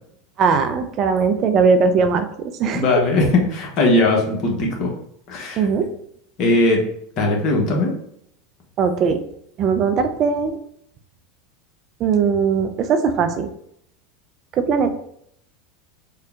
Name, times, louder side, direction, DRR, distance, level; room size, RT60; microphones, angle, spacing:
voice 1, 0.4-2.9 5.6-5.9 8.8-9.2 9.6-10.6 12.0-13.5 14.5-14.9, right 5 dB, 45° right, 8 dB, 0.4 m, -19 dB
voice 2, 2.7-4.9 5.3-5.7 6.4-6.8 7.2-7.9, left 2 dB, 50° left, 0 dB, 1.1 m, -19 dB
3.8 x 2.3 x 3.4 m, 0.70 s
hypercardioid pair, 90°, 0 cm